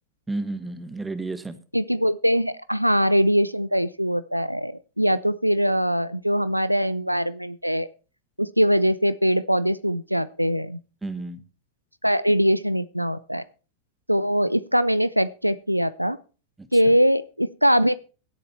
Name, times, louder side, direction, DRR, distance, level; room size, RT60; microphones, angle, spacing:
voice 1, 0.3-1.6 11.0-11.4 16.6-17.0, right 2 dB, 10° right, 10 dB, 1.6 m, -32 dB
voice 2, 1.7-7.9 8.4-10.8 12.0-13.4 14.1-16.2 16.7-18.0, equal, 90° right, 17 dB, 0.5 m, -22 dB
17.0 x 8.4 x 4.5 m, 0.36 s
figure-of-eight pair, 90°, 0 cm